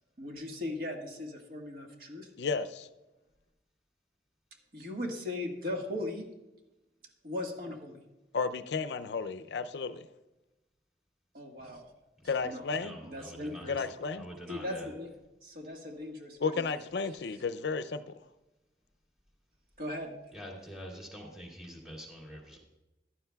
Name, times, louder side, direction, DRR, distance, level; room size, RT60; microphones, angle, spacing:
voice 1, 0.2-2.3 4.7-6.3 7.2-8.0 11.3-11.8 12.4-12.6 13.0-13.8 14.5-15.1 15.4-16.7 19.8-20.1, left 1 dB, 50° right, 2 dB, 1.5 m, -38 dB
voice 2, 2.4-2.9 8.3-10.1 12.3-13.0 13.7-14.2 16.4-18.2, left 4 dB, 70° left, 12 dB, 0.4 m, -33 dB
voice 3, 12.8-13.8 14.2-14.9 20.3-22.6, equal, 5° right, -2 dB, 2.1 m, -46 dB
15.0 x 11.0 x 2.3 m, 1.0 s
head